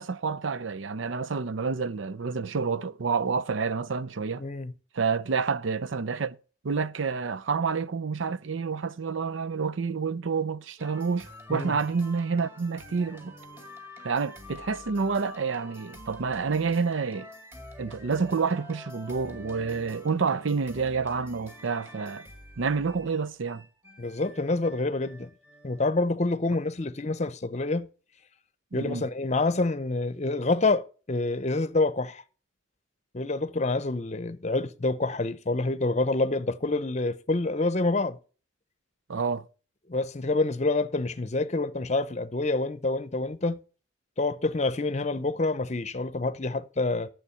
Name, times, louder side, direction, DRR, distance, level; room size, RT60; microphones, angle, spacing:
voice 1, 0.0-4.4 4.9-6.4 6.6-13.3 14.0-17.3 17.8-22.3 22.6-23.6 28.7-29.0 39.1-39.5, right 5 dB, 85° right, 0.6 m, -28 dB
voice 2, 4.4-4.7 11.5-11.8 24.0-25.3 25.6-27.9 28.7-32.2 33.1-38.2 39.9-43.6 44.2-47.1, left 2 dB, 35° left, 0.7 m, -27 dB
sound 1, 10.8-25.9, left 1 dB, 10° right, 1.7 m, -47 dB
10.0 x 7.2 x 5.6 m
head